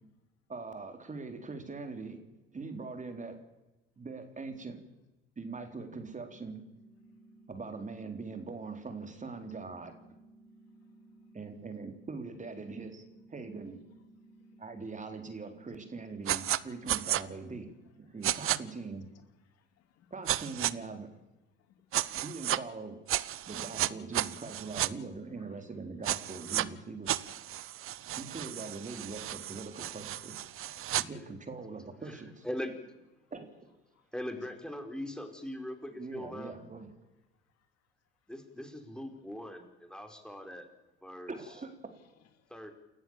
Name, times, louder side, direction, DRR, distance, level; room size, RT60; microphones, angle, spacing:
voice 1, 0.5-2.2 2.5-3.4 4.0-4.8 5.4-6.6 7.5-9.9 11.3-13.8 14.6-17.7 18.0-19.1 20.1-21.1 22.2-23.0 23.5-27.3 28.2-30.4 31.0-32.4 33.3-33.7 36.0-36.9 41.3-41.7, right 4 dB, 25° right, 7 dB, 3.9 m, -42 dB
sound 1, 6.1-16.1, right 2 dB, 85° right, 7.6 m, -58 dB
sound 2, 16.3-16.6 16.9-17.2 18.2-18.6 20.3-20.7 21.9-22.6 23.1-24.9 26.0-26.7 27.1-31.0, right 13 dB, 45° right, 0.9 m, -33 dB
voice 2, 18.1-18.8 19.5-20.4 21.7-21.8 23.5-23.9 24.2-25.8 26.0-26.1 26.5-26.7 28.0-28.5 30.6-30.7 33.9-34.0 34.4-34.5 36.8-36.9 39.1-39.2 41.4-42.5, left 7 dB, 60° left, 8 dB, 3.1 m, -61 dB
voice 3, 32.0-32.7 34.1-36.6 38.3-40.7 41.0-41.4 42.5-42.7, left 1 dB, 5° left, 6 dB, 4.8 m, -41 dB
29.0 x 14.5 x 7.3 m, 1.0 s
hypercardioid pair, 65°, 29 cm